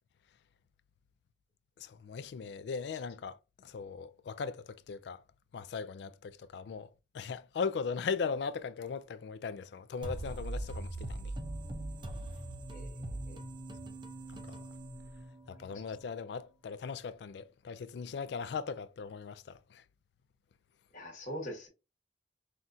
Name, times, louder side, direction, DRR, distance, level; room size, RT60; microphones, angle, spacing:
voice 1, 1.8-5.2 5.5-6.9 7.1-11.3 14.3-14.6 15.5-19.8, left 5 dB, 70° left, 0.3 m, -39 dB
sound 1, 10.0-15.7, right 2 dB, 25° right, 0.5 m, -41 dB
voice 2, 12.7-13.4 15.7-15.8 20.9-21.7, equal, 45° left, 1.3 m, -43 dB
5.7 x 2.4 x 2.6 m
head